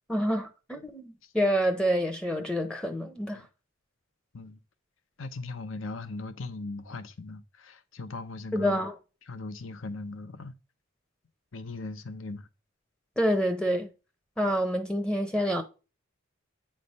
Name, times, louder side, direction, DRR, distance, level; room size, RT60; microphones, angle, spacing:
voice 1, 0.1-3.4 8.5-8.9 13.2-13.9 14.4-15.6, equal, 5° left, 0.6 m, -27 dB
voice 2, 5.2-8.8 9.3-10.5 11.5-12.5, left 3 dB, 70° left, 0.8 m, -39 dB
8.7 x 3.2 x 5.4 m
head